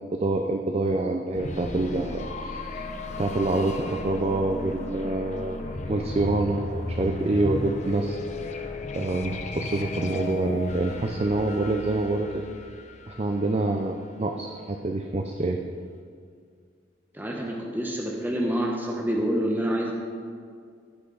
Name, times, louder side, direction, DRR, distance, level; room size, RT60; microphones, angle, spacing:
voice 1, 0.0-2.8 3.2-5.6 5.9-8.2 8.9-12.5 13.1-15.6, right 2 dB, 35° right, 3 dB, 0.5 m, -26 dB
sound 1, 1.3-14.1, left 2 dB, 40° left, 0.8 m, -35 dB
voice 2, 17.1-19.9, equal, 10° right, -2 dB, 1.0 m, -27 dB
16.0 x 6.1 x 4.0 m, 2.2 s
head